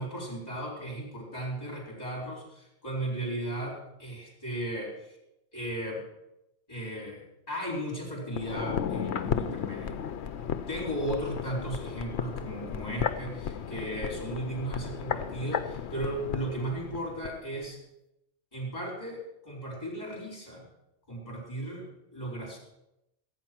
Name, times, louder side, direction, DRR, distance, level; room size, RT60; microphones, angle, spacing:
voice 1, 0.0-5.2 5.5-6.0 6.7-10.0 10.4-17.8 18.5-20.6 21.1-22.6, right 1 dB, 35° left, -1 dB, 4.5 m, -36 dB
sound 1, 8.3-17.4 17.6-17.7, left 8 dB, 70° left, 1.0 m, -34 dB
16.5 x 9.1 x 6.1 m, 0.87 s
omnidirectional pair, 1.2 m